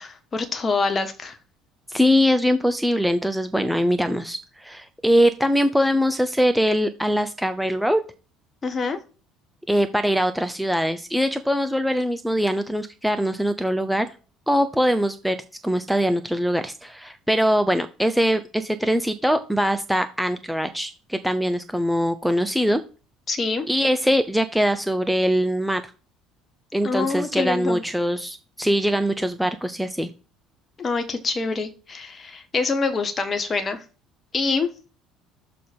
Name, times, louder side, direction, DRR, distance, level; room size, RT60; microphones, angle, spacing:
voice 1, 0.0-1.4 8.6-9.0 23.3-23.7 26.8-27.8 30.8-33.8 34.3-34.7, left 4 dB, 30° left, 8 dB, 1.5 m, -25 dB
voice 2, 1.9-8.0 9.7-14.1 14.5-15.4 15.6-22.8 23.7-25.8 26.7-30.1, equal, ahead, 8 dB, 0.7 m, -22 dB
6.6 x 3.8 x 5.4 m, 0.35 s
figure-of-eight pair, 55°, 0 cm